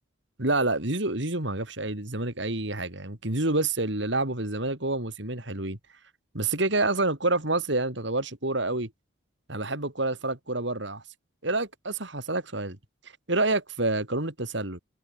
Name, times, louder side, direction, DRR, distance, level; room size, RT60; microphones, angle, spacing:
voice 1, 0.4-5.8 6.3-8.9 9.5-11.0 11.4-12.8 13.3-14.8, right 2 dB, 60° right, 3.3 m, -28 dB
head